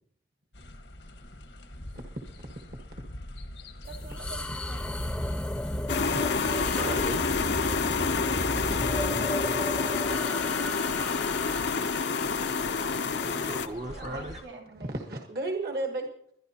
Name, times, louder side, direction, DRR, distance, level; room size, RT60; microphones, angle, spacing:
sound 1, 0.5-14.4, left 1 dB, 90° left, 1.4 m, -44 dB
sound 2, 3.8-13.7, left 1 dB, 5° left, 0.6 m, -35 dB
voice 1, 3.9-5.1 13.5-14.9, right 3 dB, 85° right, 1 dB, 2.4 m, -48 dB
sound 3, 5.9-13.7, left 5 dB, 70° left, 0.6 m, -28 dB
voice 2, 6.7-7.2 12.8-14.4, right 1 dB, 35° right, 3 dB, 0.7 m, -37 dB
voice 3, 14.7-16.3, right 2 dB, 55° right, 3 dB, 1.4 m, -33 dB
23.0 x 10.5 x 2.9 m, 0.69 s
head